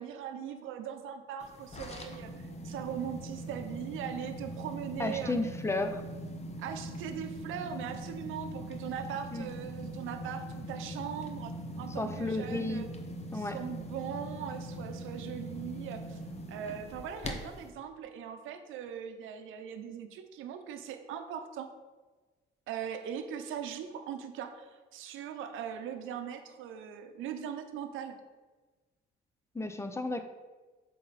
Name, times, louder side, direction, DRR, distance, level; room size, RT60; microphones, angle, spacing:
voice 1, 0.0-5.4 6.6-12.9 13.3-16.2 16.5-21.7 22.7-28.2, right 8 dB, 90° right, 8 dB, 0.7 m, -40 dB
sound 1, 1.4-17.7, right 1 dB, 35° left, 0.9 m, -41 dB
voice 2, 5.0-6.0 9.3-9.5 12.0-12.8 13.3-13.6 29.5-30.2, left 2 dB, 15° left, 8 dB, 0.6 m, -33 dB
7.6 x 4.2 x 4.1 m, 1.3 s
cardioid pair, 90°, 20 cm